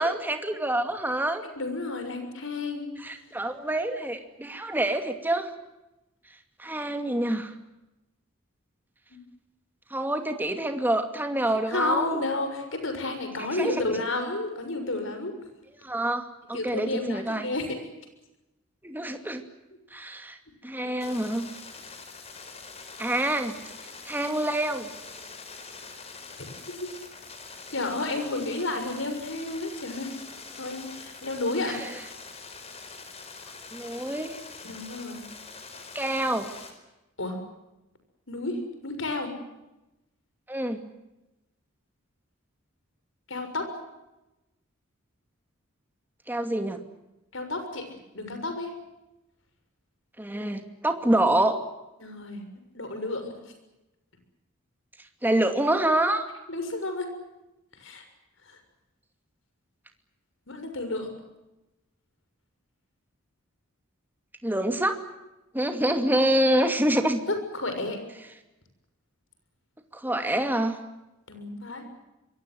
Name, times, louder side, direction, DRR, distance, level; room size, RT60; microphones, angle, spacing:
voice 1, 0.0-1.4 3.0-5.5 6.6-7.5 9.9-12.2 13.5-13.8 15.8-17.5 18.8-19.4 19.9-20.4 20.6-21.5 23.0-23.6 24.0-24.9 31.7-31.9 33.7-34.4 35.9-36.5 40.5-40.8 46.3-46.8 50.2-51.6 55.2-56.2 64.4-65.0 65.5-67.2 69.9-70.8, right 1 dB, 10° right, 6 dB, 2.5 m, -26 dB
voice 2, 1.6-2.9 9.1-9.2 11.7-15.3 16.5-17.6 26.4-26.5 26.8-26.9 27.7-30.1 30.6-31.8 34.6-35.2 37.2-37.4 38.3-39.3 43.3-43.7 47.3-47.8 48.1-48.7 52.0-52.4 52.7-53.4 56.5-57.1 57.8-58.0 58.5-58.6 60.5-61.1 67.5-68.0 71.3-71.8, left 2 dB, 65° left, 6 dB, 6.6 m, -31 dB
sound 1, 21.0-36.7, left 4 dB, 30° left, 4.6 m, -44 dB
26.5 x 23.5 x 7.9 m, 0.99 s
head